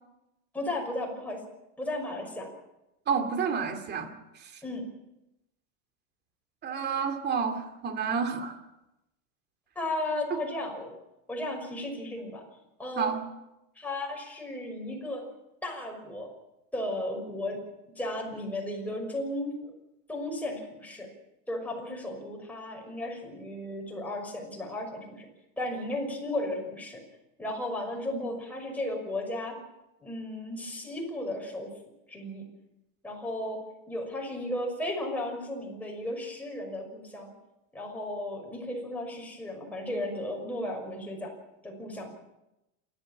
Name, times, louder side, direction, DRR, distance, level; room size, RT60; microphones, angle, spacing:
voice 1, 0.5-1.4 1.8-2.5 4.6-4.9 9.8-10.9 11.3-12.4 12.8-13.1 13.8-15.2 15.6-16.3 16.7-17.6 18.0-19.7 20.1-21.1 21.5-25.3 25.6-27.0 27.4-29.6 30.0-31.7 32.1-32.4 33.0-33.6 33.9-37.3 37.7-41.3 41.6-42.1, left 1 dB, 5° left, 0 dB, 6.1 m, -34 dB
voice 2, 3.1-4.1 4.4-4.5 6.6-8.6 13.0-13.2 28.1-28.2, right 6 dB, 25° right, 6 dB, 2.6 m, -30 dB
28.0 x 13.0 x 7.4 m, 0.93 s
supercardioid pair, 140°, 38 cm